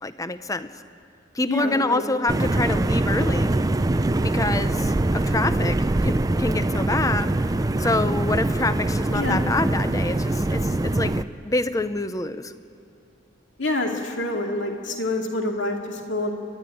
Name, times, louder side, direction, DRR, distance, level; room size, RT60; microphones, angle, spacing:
voice 1, 0.0-0.7 1.3-3.5 4.2-7.3 7.8-12.5, left 2 dB, 15° left, 12 dB, 0.7 m, -26 dB
voice 2, 1.5-2.0 9.1-9.5 13.6-16.3, left 2 dB, 65° left, 2 dB, 2.4 m, -26 dB
sound 1, 2.3-11.2, right 2 dB, 20° right, 0.4 m, -23 dB
29.0 x 12.0 x 10.0 m, 2.8 s
head